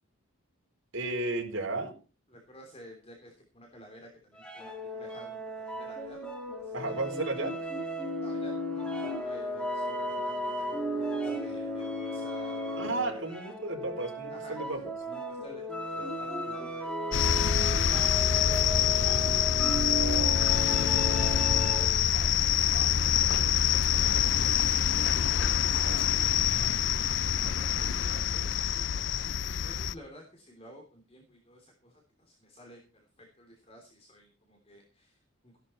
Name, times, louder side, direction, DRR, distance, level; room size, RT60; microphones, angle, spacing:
voice 1, 0.9-1.9 6.7-7.5 12.8-14.8, right 2 dB, 70° right, 2 dB, 4.3 m, -33 dB
voice 2, 2.3-6.2 6.6-7.0 8.2-13.4 14.3-23.0 23.3-24.5 24.8-27.1 27.4-35.6, equal, 30° left, 1 dB, 3.1 m, -53 dB
sound 1, 4.4-22.1, equal, 5° left, 2.1 m, -35 dB
sound 2, 17.1-29.9, left 9 dB, 60° left, 0.5 m, -26 dB
16.0 x 11.5 x 4.3 m, 0.36 s
head